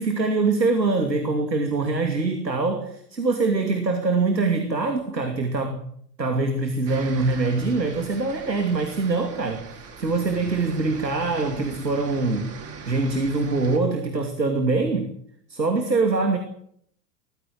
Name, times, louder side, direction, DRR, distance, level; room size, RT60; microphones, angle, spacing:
voice 1, 0.0-5.8 6.2-12.5 12.9-15.1 15.5-16.4, right 3 dB, 90° right, 6 dB, 2.8 m, -24 dB
sound 1, 6.9-13.8, right 4 dB, 30° right, 4.9 m, -40 dB
21.0 x 15.0 x 8.6 m, 0.65 s
figure-of-eight pair, 85°, 49 cm